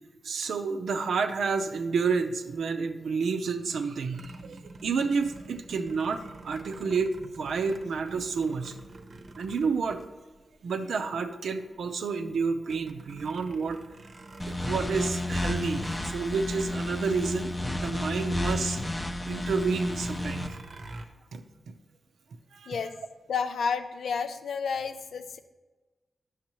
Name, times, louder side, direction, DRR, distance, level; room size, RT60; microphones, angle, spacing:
voice 1, 0.2-8.8 9.4-10.0 10.6-13.8 14.5-18.8 19.2-20.6 21.3-21.4 22.5-22.8, right 5 dB, 85° right, 7 dB, 0.6 m, -30 dB
sound 1, 4.1-10.8 11.4-11.5 11.8-18.5 18.8-18.9 19.4-21.1, right 2 dB, 55° right, 0.7 m, -47 dB
sound 2, 14.4-20.5, left 1 dB, 15° left, 0.5 m, -31 dB
voice 2, 23.3-25.4, left 6 dB, 90° left, 9 dB, 0.4 m, -31 dB
10.0 x 6.4 x 3.0 m, 1.2 s
cardioid pair, 85°, 0 cm